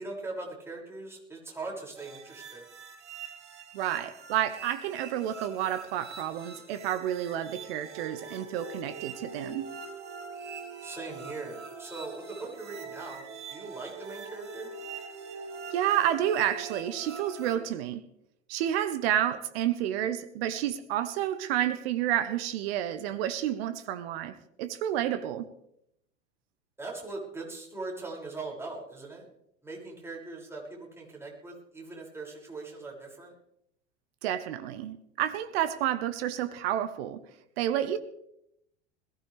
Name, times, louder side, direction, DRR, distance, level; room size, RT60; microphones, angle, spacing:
voice 1, 0.0-2.6 10.8-14.7 26.8-29.3 29.6-33.3, right 3 dB, 5° right, 6.4 m, -40 dB
sound 1, 2.0-17.6, right 5 dB, 75° right, 2.9 m, -43 dB
voice 2, 3.7-9.7 15.7-18.0 18.5-25.5 34.2-37.2 37.6-38.0, right 11 dB, 60° right, 1.1 m, -30 dB
21.5 x 16.0 x 3.4 m
figure-of-eight pair, 85°, 35 cm